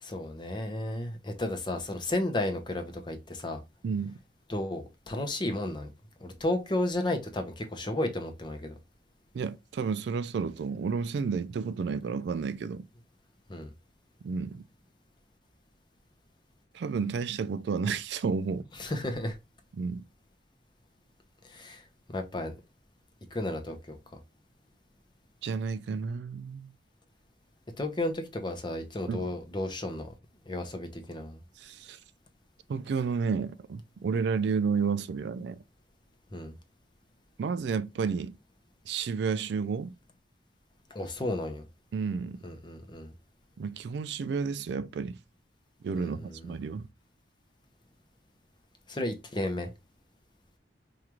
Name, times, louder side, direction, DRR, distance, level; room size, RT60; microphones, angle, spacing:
voice 1, 0.0-3.6 4.5-5.9 6.2-8.7 13.5-13.7 18.8-19.4 21.5-21.8 22.1-22.5 23.3-24.0 27.8-30.1 30.5-31.4 36.3-36.5 40.9-41.6 42.4-43.1 46.0-46.5 48.9-49.7, left 1 dB, 25° left, 0.6 m, -33 dB
voice 2, 3.8-4.2 9.3-12.9 14.2-14.6 16.7-18.7 19.7-20.0 25.4-26.7 29.1-29.3 31.6-32.0 32.7-35.6 37.4-38.3 38.9-39.9 41.9-42.4 43.6-45.2 45.8-46.9, right 5 dB, 70° right, 0.3 m, -31 dB
4.7 x 2.4 x 2.9 m
head